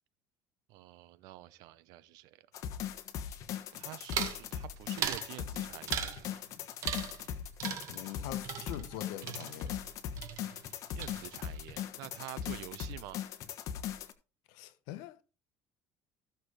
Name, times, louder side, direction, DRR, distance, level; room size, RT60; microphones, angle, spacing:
voice 1, 0.7-2.4 3.7-6.4 10.9-13.2, right 15 dB, 75° right, 0.8 m, -48 dB
sound 1, 2.5-14.1, left 9 dB, 60° left, 1.3 m, -39 dB
sound 2, 4.1-4.4 5.0-5.3 5.9-6.2 6.8-7.3 7.6-9.9 10.2-10.7 11.0-11.6, right 9 dB, 55° right, 1.7 m, -38 dB
voice 2, 7.9-9.8 14.5-15.2, left 13 dB, 85° left, 1.1 m, -44 dB
15.5 x 6.7 x 3.3 m
cardioid pair, 130°, 6 cm